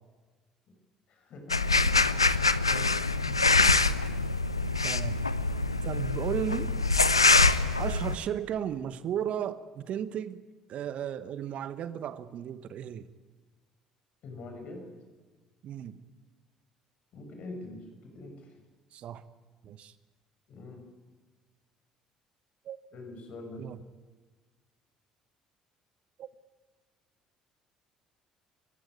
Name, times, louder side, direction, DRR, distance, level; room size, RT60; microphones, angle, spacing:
voice 1, 1.1-2.0 2.7-2.9 5.4-5.9 14.2-14.8 17.1-18.5 20.5-20.8 22.9-23.6, left 2 dB, 50° left, 4 dB, 6.7 m, -45 dB
sound 1, 1.5-8.1, left 3 dB, 90° left, 0.7 m, -24 dB
voice 2, 3.3-3.8 4.8-5.3 5.8-6.8 7.8-10.4 10.7-13.1 15.6-16.0 18.9-19.2 19.6-19.9 22.6-22.8 23.6-23.8 26.2-26.3, right 9 dB, 50° right, 14 dB, 1.1 m, -35 dB
28.0 x 15.5 x 9.5 m, 1.3 s
figure-of-eight pair, 55°, 3 cm